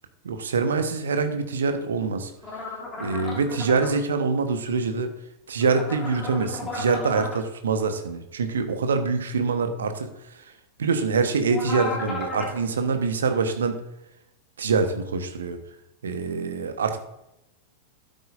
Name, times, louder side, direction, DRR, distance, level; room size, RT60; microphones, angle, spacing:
voice 1, 0.2-2.3 3.0-5.1 5.5-10.4 10.8-13.8 14.6-15.6 16.0-17.0, right 4 dB, 65° right, 7 dB, 1.2 m, -25 dB
sound 1, 2.4-3.9 5.6-7.4 11.5-12.6, left 2 dB, 20° left, 2.9 m, -34 dB
12.5 x 9.1 x 2.6 m, 0.87 s
figure-of-eight pair, 90°, 0 cm